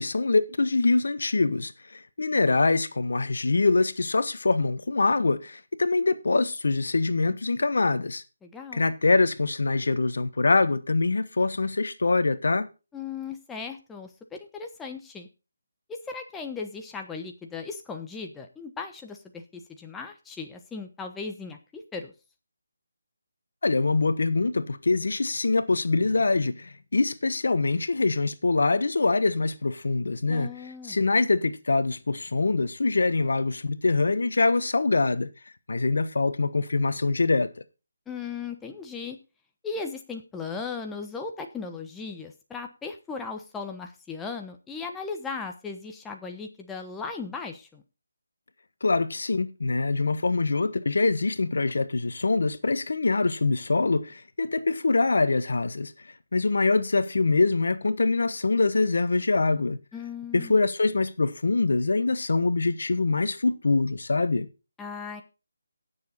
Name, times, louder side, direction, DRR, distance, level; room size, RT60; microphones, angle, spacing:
voice 1, 0.0-8.2 8.7-12.7 23.6-30.5 30.8-35.3 35.7-37.5 48.8-56.1 56.3-59.8 60.3-64.5, left 3 dB, 70° left, 1.2 m, -24 dB
voice 2, 8.4-8.9 12.9-15.3 15.9-22.1 30.3-31.0 38.1-39.2 39.6-47.8 59.9-60.6 64.8-65.2, left 5 dB, 5° left, 1.1 m, -37 dB
17.0 x 7.0 x 4.2 m
figure-of-eight pair, 160°, 0 cm